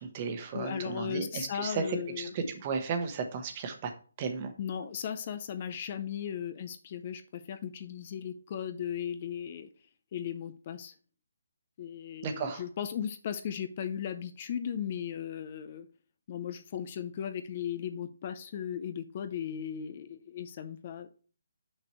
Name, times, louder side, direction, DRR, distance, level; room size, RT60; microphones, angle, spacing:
voice 1, 0.0-3.9 4.2-4.5 12.2-12.6, right 5 dB, 25° right, 7 dB, 1.0 m, -34 dB
voice 2, 0.5-2.3 4.6-9.7 10.1-10.9 11.8-15.9 16.3-21.1, left 8 dB, 35° left, 10 dB, 0.5 m, -37 dB
6.2 x 5.9 x 3.1 m, 0.39 s
hypercardioid pair, 165°, 0 cm